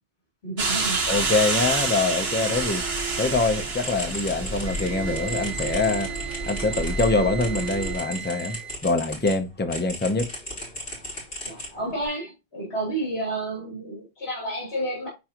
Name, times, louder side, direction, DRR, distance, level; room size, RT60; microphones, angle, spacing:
voice 1, 0.4-1.0 11.4-15.1, right 1 dB, 65° left, 3.5 m, -30 dB
sound 1, 0.6-7.9, right 3 dB, 65° right, 1.7 m, -28 dB
voice 2, 1.1-2.8 3.2-6.1 6.5-10.3, left 3 dB, 10° left, 0.7 m, -24 dB
sound 2, 3.7-9.4 9.7-12.1, equal, 45° left, 5.0 m, -37 dB
Wind instrument woodwind instrument, 4.6-8.8, right 9 dB, 25° right, 1.1 m, -37 dB
10.0 x 3.8 x 2.9 m
omnidirectional pair, 1.1 m